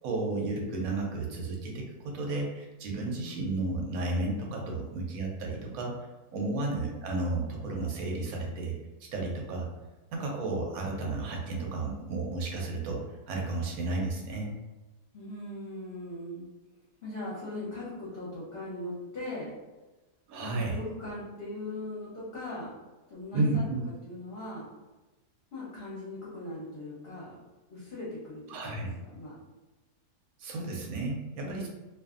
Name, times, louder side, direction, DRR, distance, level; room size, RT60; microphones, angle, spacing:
voice 1, 0.0-6.0 6.3-8.8 9.1-9.7 10.1-14.5 20.3-20.7 23.3-23.8 28.5-28.9 30.4-31.7, right 2 dB, 70° right, 0 dB, 1.0 m, -32 dB
voice 2, 15.1-16.5 17.0-19.5 20.4-22.7 23.1-23.6 24.1-24.7 25.5-27.4 27.7-29.4 31.4-31.7, left 1 dB, 50° left, -8 dB, 0.9 m, -39 dB
2.6 x 2.5 x 2.4 m, 1.1 s
omnidirectional pair, 1.8 m